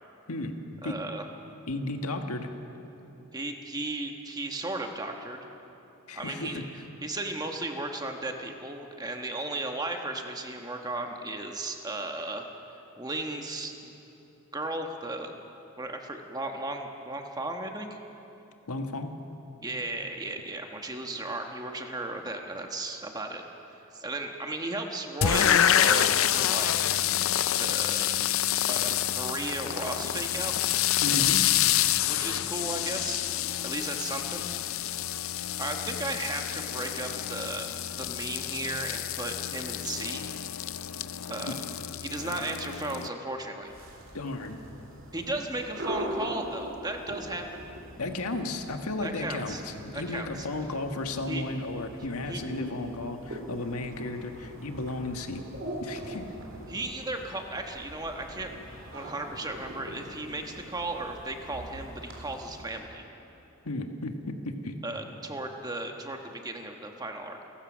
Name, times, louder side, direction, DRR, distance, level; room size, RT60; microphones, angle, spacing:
voice 1, 0.8-1.3 3.3-5.5 6.1-6.6 7.0-12.5 13.0-13.9 14.5-15.3 15.8-18.0 19.6-23.4 23.9-26.9 27.6-28.3 28.7-30.5 32.1-33.2 33.6-34.5 35.6-37.7 38.0-40.3 41.3-41.6 42.0-43.7 45.1-47.4 49.0-49.6 49.9-50.5 51.3-51.4 52.3-52.4 56.7-58.5 58.9-63.1 64.8-67.4, right 2 dB, 15° right, 3 dB, 1.3 m, -35 dB
voice 2, 1.7-2.5 6.1-6.7 18.7-19.1 31.0-31.4 41.5-41.6 42.2-42.3 44.1-44.6 48.0-55.4 55.8-56.4 63.6-64.7, left 2 dB, 85° left, 5 dB, 1.6 m, -34 dB
sound 1, 25.2-43.1, left 11 dB, 65° left, 0.5 m, -28 dB
sound 2, 43.6-62.9, right 1 dB, 60° right, 3.6 m, -42 dB
29.0 x 15.0 x 6.3 m, 3.0 s
head